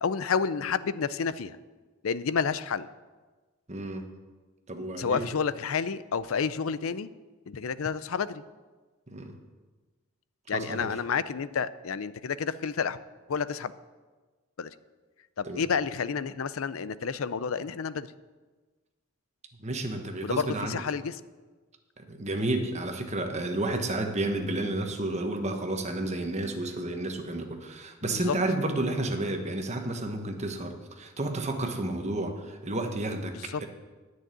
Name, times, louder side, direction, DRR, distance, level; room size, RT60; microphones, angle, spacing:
voice 1, 0.0-1.6 2.0-2.9 5.0-7.1 7.5-8.4 10.5-13.0 13.3-13.7 14.6-14.7 15.4-18.1 20.2-21.2 28.1-28.3 33.3-33.7, left 6 dB, 80° left, 16 dB, 0.5 m, -30 dB
voice 2, 3.7-4.1 4.7-5.3 9.1-9.3 10.5-10.9 15.4-15.6 19.6-20.8 22.0-33.7, right 2 dB, 35° right, 4 dB, 1.3 m, -31 dB
10.5 x 6.4 x 9.0 m, 1.3 s
head